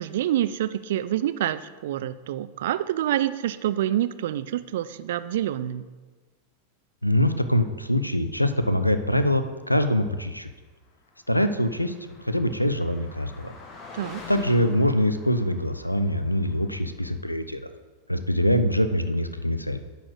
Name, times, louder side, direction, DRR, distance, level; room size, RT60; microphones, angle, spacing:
voice 1, 0.0-5.9 13.9-14.2, right 12 dB, 55° right, 13 dB, 0.4 m, -27 dB
voice 2, 7.0-10.5 11.3-11.9 12.2-13.5 14.3-17.6 18.1-19.8, equal, 90° left, 10 dB, 0.5 m, -24 dB
Car passing by, 11.0-17.0, left 4 dB, 30° left, 1.4 m, -46 dB
10.5 x 4.2 x 6.3 m, 1.3 s
figure-of-eight pair, 90°, 0 cm